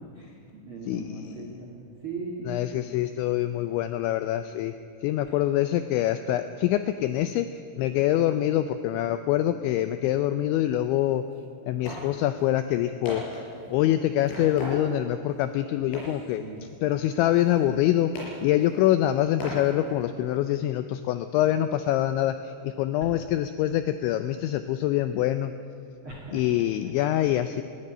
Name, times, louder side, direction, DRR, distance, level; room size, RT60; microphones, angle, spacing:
voice 1, 0.0-2.8 5.2-5.4 16.0-16.6 23.0-23.2 26.0-26.6, right 3 dB, 85° right, -1 dB, 1.1 m, -40 dB
voice 2, 0.9-1.4 2.5-4.7 5.0-11.2 11.7-13.4 13.7-16.4 16.8-18.1 18.4-25.5 26.3-27.6, left 13 dB, 85° left, 10 dB, 2.6 m, -25 dB
sound 1, 10.9-11.0 11.3-11.5 11.9-12.1 12.4-12.5 13.1-13.9 14.3-15.1 15.4-15.5 15.9-16.3 16.6-17.8 18.2-18.9 19.4-20.4, left 1 dB, 70° left, 8.3 m, -38 dB
20.5 x 16.0 x 9.9 m, 2.8 s
omnidirectional pair, 6.0 m